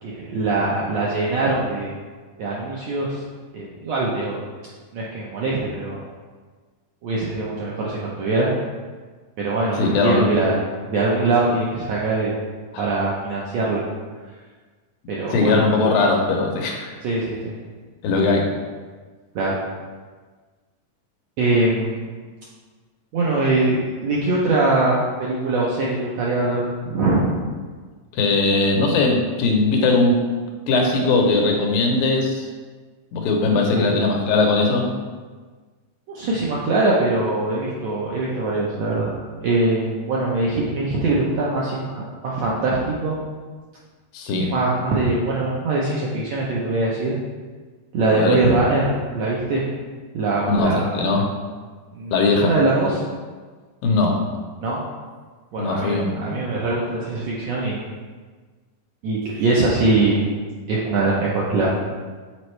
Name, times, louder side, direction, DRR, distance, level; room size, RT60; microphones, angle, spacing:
voice 1, 0.0-1.9 2.4-3.2 3.5-4.4 4.9-6.0 7.0-8.5 9.4-10.6 10.9-12.3 12.8-13.8 15.1-15.6 17.0-17.5 19.3-19.5 21.4-22.1 23.1-27.5 33.7-34.0 36.1-39.1 39.4-43.2 44.4-47.2 47.9-49.6 50.1-50.9 51.9-53.0 54.6-54.8 55.5-57.8 59.0-60.2 60.7-61.7, right 2 dB, 75° right, -5 dB, 1.5 m, -22 dB
voice 2, 9.8-10.3 12.7-12.8 15.3-16.9 18.0-18.5 28.1-30.2 30.7-32.5 33.1-34.9 44.1-44.5 48.1-48.4 50.5-51.3 52.1-52.5 53.8-54.2 55.6-56.4, left 3 dB, 90° left, 1 dB, 2.6 m, -19 dB
7.6 x 4.3 x 3.2 m, 1.4 s
omnidirectional pair, 3.9 m